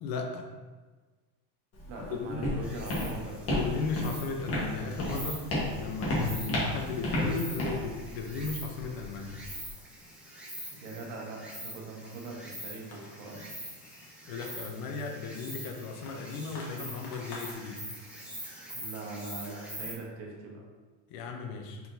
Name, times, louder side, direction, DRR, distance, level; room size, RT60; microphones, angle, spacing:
voice 1, 0.0-0.4 2.0-2.4 3.6-5.4 5.8-9.4 14.3-17.8 21.1-21.8, left 4 dB, 50° left, 3 dB, 0.7 m, -36 dB
Walk footsteps, 1.7-9.7, left 1 dB, 30° left, 1.3 m, -33 dB
voice 2, 1.9-3.4 10.7-13.5 18.7-20.6, right 3 dB, 75° right, -1 dB, 1.3 m, -42 dB
Insect, 2.6-19.9, equal, 5° right, 0.4 m, -44 dB
sound 1, 12.6-17.5, left 3 dB, 80° left, 1.5 m, -50 dB
4.6 x 3.9 x 2.6 m, 1.3 s
cardioid pair, 155°, 44 cm